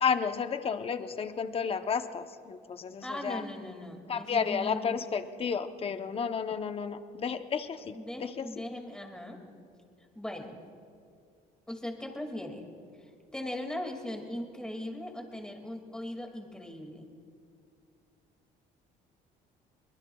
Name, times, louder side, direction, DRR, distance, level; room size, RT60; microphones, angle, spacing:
voice 1, 0.0-3.4 4.1-8.5, left 6 dB, 35° left, 9 dB, 0.8 m, -32 dB
voice 2, 3.0-5.0 7.9-9.4 10.2-10.6 11.7-12.7 13.0-17.1, left 1 dB, 5° left, 3 dB, 2.2 m, -39 dB
24.0 x 21.5 x 2.3 m, 2.4 s
cardioid pair, 110°, 17 cm